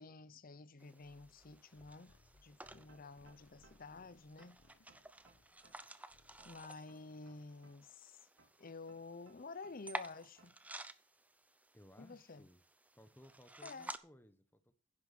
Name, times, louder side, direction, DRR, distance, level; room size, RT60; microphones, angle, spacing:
voice 1, 0.0-2.1 2.4-4.6 6.4-8.2 8.6-10.6 12.0-12.5 13.6-13.9, left 3 dB, 45° left, 0.7 m, -51 dB
sound 1, 0.8-14.0, right 2 dB, 5° right, 0.6 m, -53 dB
sound 2, 1.0-6.7, left 2 dB, 70° left, 1.0 m, -69 dB
sound 3, 2.9-4.0 4.4-6.0 6.4-8.0 8.4-10.0 10.4-10.7, right 3 dB, 70° right, 3.2 m, -68 dB
voice 2, 11.7-12.6 13.0-14.7, equal, 10° left, 1.3 m, -61 dB
10.5 x 10.5 x 6.0 m
head